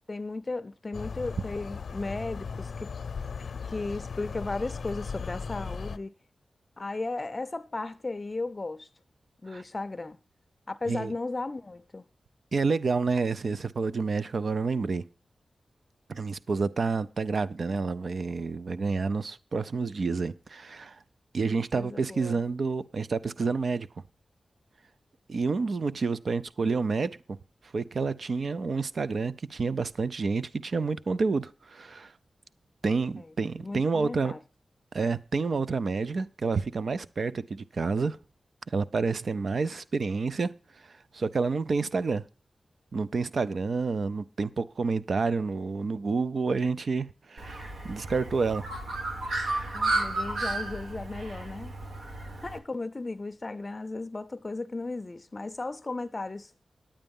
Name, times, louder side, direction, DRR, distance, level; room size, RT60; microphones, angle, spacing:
voice 1, 0.1-2.9 3.6-6.1 6.8-8.9 9.4-10.2 10.7-12.0 21.7-22.4 33.2-33.3 33.6-34.4 49.7-51.8 52.4-56.6, left 3 dB, 30° left, 0.5 m, -35 dB
sound 1, 0.9-6.0, left 5 dB, 80° left, 0.6 m, -37 dB
voice 2, 12.5-15.0 16.1-21.0 21.3-23.9 25.3-27.4 27.7-32.1 32.8-34.3 34.9-38.2 38.7-40.5 40.8-42.2 42.9-48.6, right 4 dB, 60° right, 0.5 m, -29 dB
Bird, 47.4-52.6, right 2 dB, 85° right, 1.7 m, -33 dB
10.0 x 8.9 x 5.3 m
wide cardioid pair, 120°, 0 cm